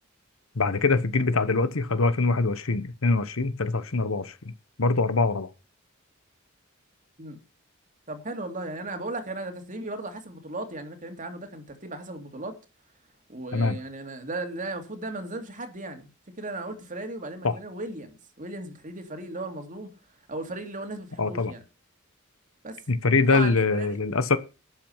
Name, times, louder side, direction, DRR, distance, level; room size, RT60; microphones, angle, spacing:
voice 1, 0.5-4.3 4.8-5.5 13.5-13.8 17.4-17.6 21.2-21.5 22.9-24.4, left 3 dB, 70° left, 1.1 m, -23 dB
voice 2, 8.1-12.6 13.3-16.1 16.4-19.9 20.3-21.6 22.6-22.8 23.3-24.0, right 2 dB, 40° right, 2.5 m, -36 dB
12.0 x 7.7 x 5.7 m
head